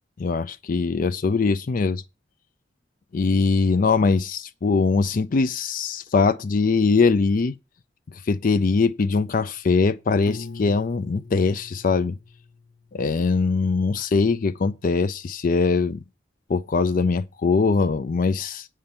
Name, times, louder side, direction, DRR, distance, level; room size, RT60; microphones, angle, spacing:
voice 1, 0.2-2.0 3.1-7.6 8.3-12.1 12.9-16.0 16.5-18.7, left 4 dB, 50° left, 0.4 m, -22 dB
Piano, 10.3-13.2, left 3 dB, 80° left, 0.8 m, -41 dB
8.7 x 5.6 x 7.1 m
head